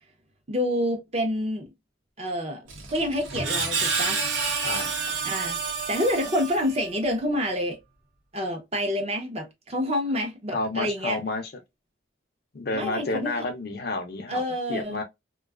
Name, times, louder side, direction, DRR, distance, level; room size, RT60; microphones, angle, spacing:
voice 1, 0.5-1.6 2.2-4.2 5.2-5.6 5.9-7.8 8.3-11.2 12.7-13.3 14.3-15.0, equal, 30° right, 0.6 m, -28 dB
Screech, 2.7-7.0, right 5 dB, 85° right, 0.8 m, -29 dB
voice 2, 4.6-5.1 10.5-11.5 12.5-14.4 14.7-15.0, left 2 dB, 55° left, 0.5 m, -30 dB
2.4 x 2.3 x 2.2 m
head